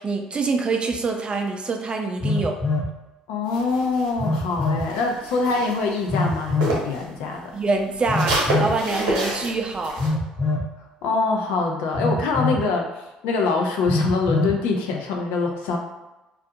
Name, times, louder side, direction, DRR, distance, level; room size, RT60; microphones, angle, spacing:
voice 1, 0.0-2.6 7.5-10.0, right 3 dB, 30° right, 3 dB, 0.4 m, -25 dB
Telephone, 0.9-1.0 2.2-2.9 4.2-4.9 6.1-6.8 8.1-8.8 10.0-10.7 11.9-12.7 13.9-14.6, left 2 dB, 25° left, 0.7 m, -24 dB
voice 2, 3.3-7.5 11.0-15.8, left 3 dB, 75° left, 1 dB, 0.5 m, -24 dB
sound 1, 3.5-7.0 7.3-10.1, right 1 dB, 85° right, 0.9 m, -28 dB
2.3 x 2.2 x 2.7 m, 1.0 s
hypercardioid pair, 65°, 3 cm